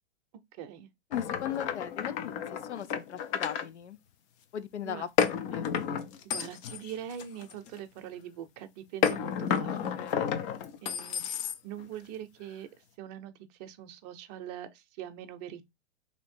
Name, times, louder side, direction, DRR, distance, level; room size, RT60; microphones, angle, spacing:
voice 1, 0.6-0.9 4.8-5.0 5.6-5.7 6.2-10.3 10.8-12.7 13.0-13.3 13.6-15.6, right 10 dB, 40° right, 0.6 m, -43 dB
voice 2, 1.1-2.3 2.6-4.0 4.5-5.7 9.7-10.3, left 9 dB, 90° left, 0.6 m, -38 dB
sound 1, 1.1-3.7 5.2-7.8 9.0-11.9, left 8 dB, 30° left, 0.5 m, -31 dB
3.0 x 2.8 x 4.3 m
hypercardioid pair, 120°, 34 cm